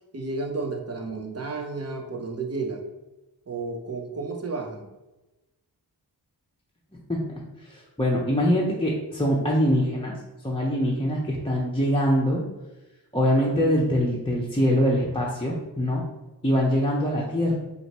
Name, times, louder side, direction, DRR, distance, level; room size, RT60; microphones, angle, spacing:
voice 1, 0.1-2.8 3.5-4.9, right 3 dB, 35° right, 3 dB, 0.8 m, -32 dB
voice 2, 7.6-10.1 10.4-12.4 13.1-16.0 16.4-17.6, equal, 10° left, -4 dB, 0.7 m, -23 dB
4.8 x 2.6 x 2.9 m, 1.0 s
cardioid pair, 45°, 43 cm